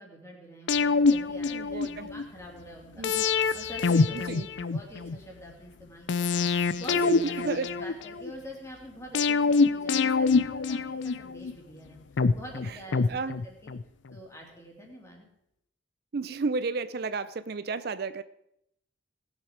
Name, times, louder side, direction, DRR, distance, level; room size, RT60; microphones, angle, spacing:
voice 1, 0.0-3.0 3.5-12.0 12.3-13.7 14.1-15.3, equal, 15° left, -1 dB, 2.8 m, -46 dB
sound 1, 0.7-2.2 3.0-5.2 6.1-8.3 9.1-11.5 12.2-13.8 14.1-14.2, left 4 dB, 70° left, 0.5 m, -25 dB
voice 2, 1.5-2.1 3.0-3.3 4.3-4.5 7.0-7.7 12.7-12.8 13.1-13.3 16.1-18.2, right 4 dB, 55° right, 13 dB, 0.5 m, -32 dB
19.0 x 7.4 x 5.0 m, 0.79 s
head